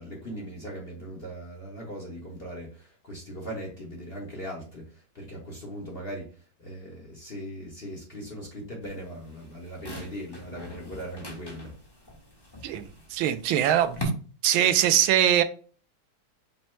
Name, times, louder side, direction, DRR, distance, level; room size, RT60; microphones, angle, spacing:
voice 1, 0.0-6.3 6.6-11.7, equal, 40° left, 1.0 m, -39 dB
sound 1, 8.8-14.0, left 1 dB, 20° left, 0.6 m, -43 dB
voice 2, 13.1-14.1 14.4-15.4, right 11 dB, 85° right, 1.4 m, -22 dB
5.5 x 2.1 x 4.4 m
omnidirectional pair, 2.2 m